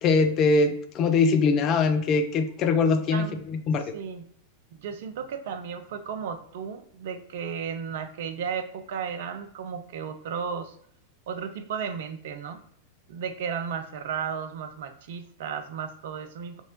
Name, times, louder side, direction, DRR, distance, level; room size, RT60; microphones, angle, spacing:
voice 1, 0.0-3.3 3.7-3.9, left 4 dB, 35° left, 8 dB, 0.5 m, -22 dB
voice 2, 3.1-3.4 3.9-4.3 4.7-10.8 11.3-12.6 13.1-16.6, right 7 dB, 55° right, 8 dB, 0.5 m, -34 dB
2.9 x 2.7 x 4.3 m, 0.68 s
figure-of-eight pair, 90°, 0 cm